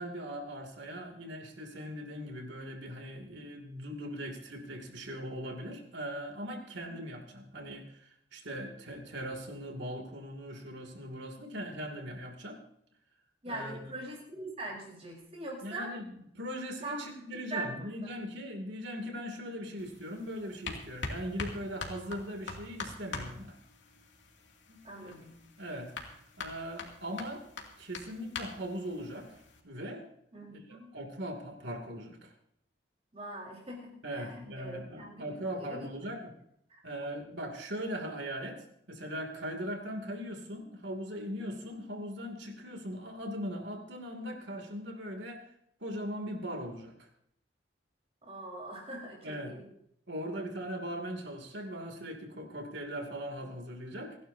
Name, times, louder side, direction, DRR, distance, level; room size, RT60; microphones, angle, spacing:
voice 1, 0.0-12.6 13.5-13.9 15.6-23.6 24.7-25.2 25.6-25.9 26.4-27.4 27.8-29.4 29.6-30.1 30.7-32.3 34.0-36.3 36.8-45.4 45.8-47.1 49.2-49.5 50.1-54.2, equal, 70° right, 3 dB, 2.7 m, -40 dB
voice 2, 13.4-15.9 16.8-17.1 17.3-17.9 24.8-25.4 30.3-30.9 33.1-35.2 35.6-36.1 36.7-36.8 48.2-49.7, right 2 dB, 35° right, -2 dB, 4.5 m, -42 dB
sound 1, 19.8-29.6, left 3 dB, 85° left, 2.5 m, -44 dB
29.0 x 11.5 x 2.8 m, 0.72 s
head